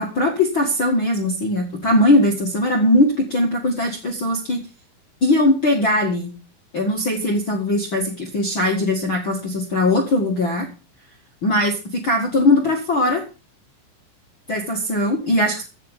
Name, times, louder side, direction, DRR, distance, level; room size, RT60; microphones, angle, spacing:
voice 1, 0.0-4.6 5.2-6.4 6.7-10.7 11.4-13.2 14.5-15.6, left 1 dB, 75° left, 1 dB, 1.1 m, -20 dB
15.5 x 6.7 x 7.3 m, 0.33 s
omnidirectional pair, 5.8 m